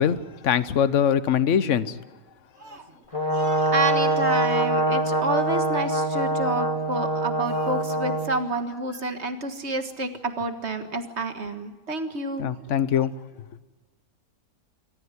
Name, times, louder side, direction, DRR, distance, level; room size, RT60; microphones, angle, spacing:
voice 1, 0.0-2.0 12.4-13.1, left 8 dB, 50° left, 15 dB, 1.1 m, -22 dB
Brass instrument, 3.1-8.3, right 1 dB, 20° left, 2.8 m, -24 dB
voice 2, 3.1-12.6 13.0-13.1, right 2 dB, 40° right, 8 dB, 1.9 m, -29 dB
26.5 x 14.5 x 9.8 m, 1.3 s
omnidirectional pair, 1.8 m